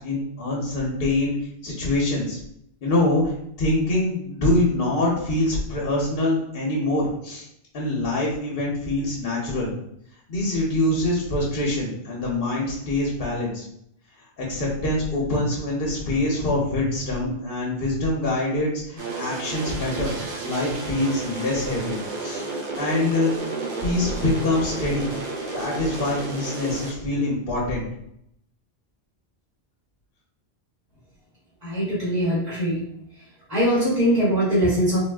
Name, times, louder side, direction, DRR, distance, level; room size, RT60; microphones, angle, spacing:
voice 1, 0.0-1.4 1.6-2.4 2.8-7.4 7.7-9.7 10.3-13.6 14.4-20.1 20.4-22.4 22.8-23.3 23.8-25.1 25.5-27.8, left 2 dB, 65° left, -3 dB, 0.9 m, -24 dB
sound 1, 19.0-26.9, right 3 dB, 55° right, 0.7 m, -32 dB
voice 2, 31.6-32.8 33.5-35.0, equal, 35° right, -9 dB, 1.3 m, -21 dB
3.5 x 2.4 x 2.2 m, 0.72 s
omnidirectional pair, 1.1 m